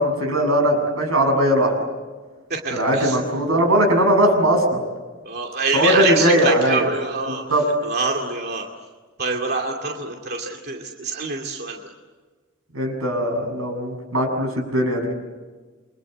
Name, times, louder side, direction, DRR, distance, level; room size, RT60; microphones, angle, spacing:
voice 1, 0.0-1.7 2.7-4.8 5.7-6.9 7.3-7.6 12.7-15.1, equal, 85° right, 3 dB, 7.2 m, -19 dB
voice 2, 2.5-3.2 5.2-7.4 7.8-8.7 9.2-11.8, right 4 dB, 50° right, 1 dB, 2.5 m, -25 dB
29.0 x 24.5 x 8.0 m, 1.4 s
head